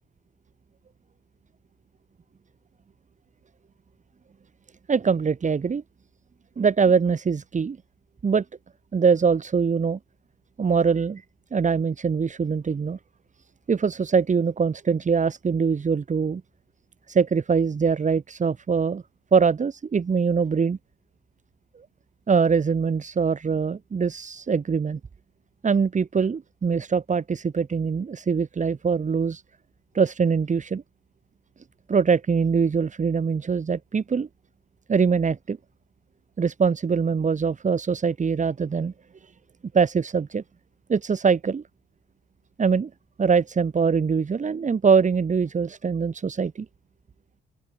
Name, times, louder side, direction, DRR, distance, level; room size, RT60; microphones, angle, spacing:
voice 1, 4.9-5.8 6.6-7.8 8.2-8.4 8.9-10.0 10.6-11.2 11.5-13.0 13.7-16.4 17.1-19.0 19.3-20.8 22.3-25.0 25.6-29.4 29.9-30.8 31.9-34.3 34.9-35.6 36.4-38.9 39.7-40.4 40.9-41.6 42.6-42.9 43.2-46.7, right 5 dB, 40° right, 3.7 m, -23 dB
open air
cardioid pair, 90°, 20 cm